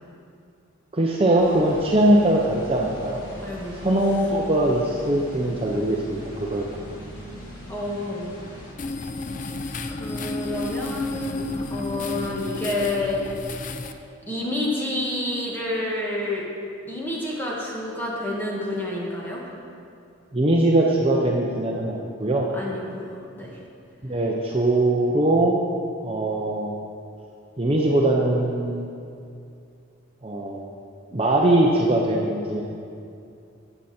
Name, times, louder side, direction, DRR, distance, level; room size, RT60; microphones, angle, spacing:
voice 1, 0.9-3.2 3.8-6.7 20.3-22.5 24.0-25.6 26.0-26.8 27.6-28.9 30.2-30.7 31.1-32.6, right 1 dB, 25° right, -1 dB, 0.7 m, -21 dB
sound 1, 1.4-8.7, equal, 80° left, 2.9 m, -40 dB
voice 2, 3.4-3.8 7.7-8.3 9.9-13.2 14.3-16.4 16.9-19.4 22.5-23.5, left 2 dB, 10° left, -4 dB, 1.8 m, -29 dB
sound 2, 8.8-13.9, left 2 dB, 35° left, 0.5 m, -32 dB
14.0 x 8.4 x 4.4 m, 2.5 s
head